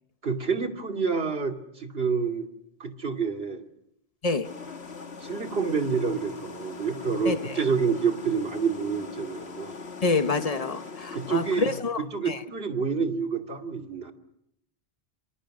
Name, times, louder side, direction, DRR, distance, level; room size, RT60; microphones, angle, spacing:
voice 1, 0.2-2.5 2.8-3.6 5.2-9.7 11.1-11.7 12.0-14.1, right 5 dB, 70° right, 2.7 m, -28 dB
sound 1, 4.4-11.8, left 4 dB, 80° left, 1.9 m, -41 dB
voice 2, 7.2-7.5 10.0-12.4, left 3 dB, 35° left, 1.3 m, -27 dB
27.0 x 27.0 x 6.5 m
omnidirectional pair, 1.1 m